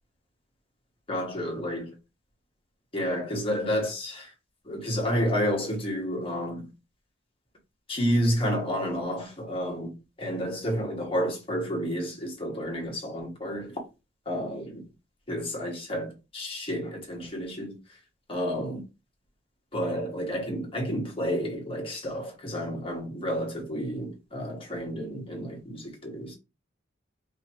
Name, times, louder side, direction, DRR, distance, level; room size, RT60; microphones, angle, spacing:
voice 1, 1.1-1.9 2.9-4.3 4.6-6.7 7.9-13.8 14.2-14.8 15.3-17.8 18.3-18.8 19.7-26.3, equal, 30° left, 1.5 m, -30 dB
4.8 x 2.8 x 3.0 m
head